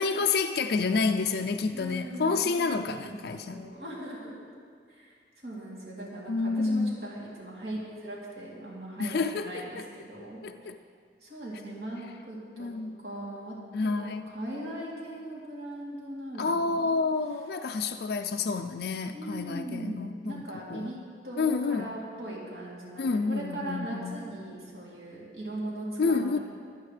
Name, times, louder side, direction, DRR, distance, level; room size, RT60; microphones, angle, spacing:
voice 1, 0.0-3.7 6.3-7.0 9.0-9.6 10.4-10.8 12.6-13.0 13.7-14.3 16.4-20.9 21.4-21.9 23.0-24.2 26.0-26.4, left 4 dB, 60° left, 6 dB, 0.4 m, -29 dB
voice 2, 1.7-4.5 4.9-5.1 5.4-10.7 11.2-12.7 13.0-17.0 19.1-21.0 21.2-26.4, right 1 dB, 65° right, -5 dB, 3.0 m, -39 dB
24.0 x 8.9 x 3.3 m, 2.1 s
head